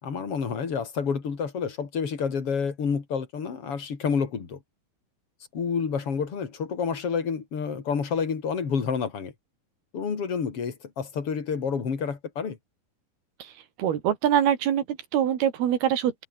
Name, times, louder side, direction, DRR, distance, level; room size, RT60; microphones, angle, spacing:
voice 1, 0.0-4.6 5.5-9.3 9.9-12.6, left 6 dB, 40° left, 3.9 m, -29 dB
voice 2, 13.8-16.3, right 10 dB, 85° right, 4.2 m, -24 dB
omnidirectional pair, 4.4 m